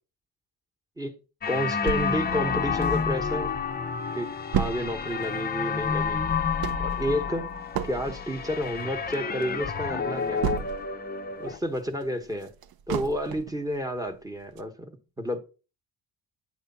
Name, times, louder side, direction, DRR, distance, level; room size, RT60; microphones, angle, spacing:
sound 1, 1.4-11.6, left 6 dB, 25° left, 0.5 m, -30 dB
voice 1, 1.5-3.5 4.1-6.4 6.8-7.5 7.8-10.4 11.4-12.5 12.9-14.9 15.2-15.4, equal, 10° right, 1.0 m, -30 dB
sound 2, 1.9-3.4 3.8-3.9 4.1-11.1 11.5-13.6 14.1-14.2 14.6-14.7, right 8 dB, 55° right, 0.6 m, -33 dB
9.4 x 3.3 x 5.4 m
cardioid pair, 140°, 42 cm